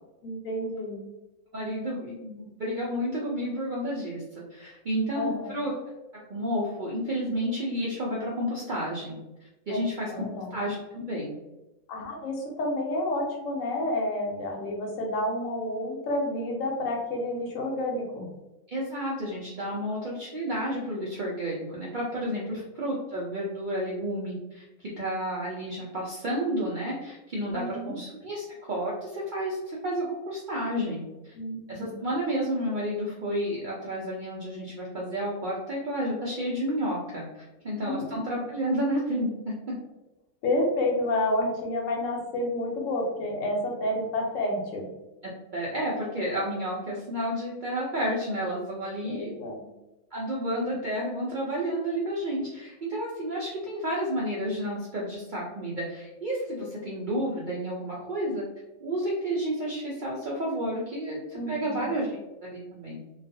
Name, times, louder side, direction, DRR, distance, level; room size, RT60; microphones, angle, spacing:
voice 1, 0.2-1.0 5.1-5.5 10.1-10.5 11.9-18.3 27.5-27.9 31.4-32.1 38.0-38.1 40.4-44.8 49.0-49.6 61.3-61.8, left 1 dB, 70° left, 0 dB, 1.0 m, -30 dB
voice 2, 1.5-4.2 4.5-5.7 6.3-9.2 9.7-10.1 10.5-11.3 18.7-31.3 31.7-39.7 45.5-49.3 50.1-58.4 58.8-63.0, equal, 75° right, -5 dB, 0.4 m, -31 dB
2.4 x 2.3 x 2.6 m, 0.98 s
omnidirectional pair, 1.5 m